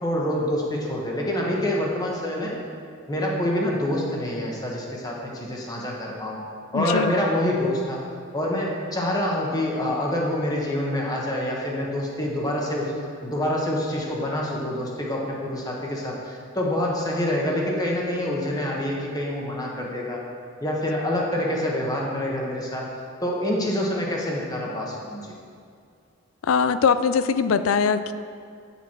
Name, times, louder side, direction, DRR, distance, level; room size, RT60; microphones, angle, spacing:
voice 1, 0.0-2.5 3.1-6.4 6.7-8.0 8.3-12.9 13.2-20.2 20.6-22.9 23.2-25.2, left 1 dB, 20° left, -2 dB, 1.3 m, -26 dB
voice 2, 6.7-7.1 26.4-28.1, left 6 dB, 85° left, 12 dB, 0.4 m, -21 dB
9.2 x 7.1 x 4.5 m, 2.3 s
head